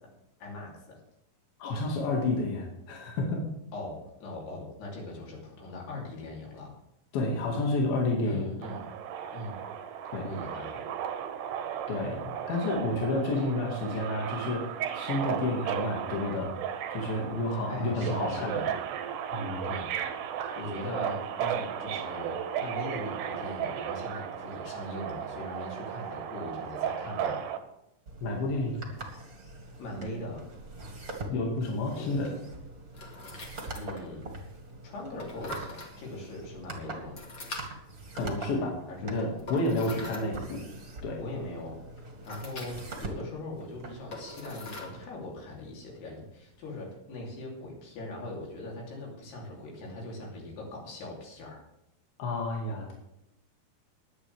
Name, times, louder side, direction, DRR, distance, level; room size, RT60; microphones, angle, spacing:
voice 1, 0.4-1.0 3.7-6.7 8.3-8.9 9.3-9.6 10.2-10.9 17.7-18.7 19.6-19.9 20.6-27.4 29.8-30.4 31.9-32.2 33.8-34.3 34.8-37.2 38.9-39.1 39.8-40.1 41.2-41.8 42.3-51.6, left 1 dB, 85° left, -2 dB, 5.4 m, -40 dB
voice 2, 1.6-3.4 7.1-8.5 10.1-10.2 11.9-14.6 14.9-16.5 16.9-18.6 19.3-19.7 28.2-28.8 31.3-32.3 38.1-38.8 39.0-40.6 41.0-41.2 52.2-52.9, left 2 dB, 70° left, -1 dB, 3.9 m, -30 dB
Subway metro underground, 8.6-27.6, right 9 dB, 75° right, 2.7 m, -35 dB
sound 1, 28.1-45.0, right 2 dB, 30° right, 1.8 m, -44 dB
sound 2, 29.4-46.9, left 2 dB, 35° left, 2.3 m, -47 dB
21.5 x 8.7 x 3.5 m, 0.83 s
omnidirectional pair, 4.6 m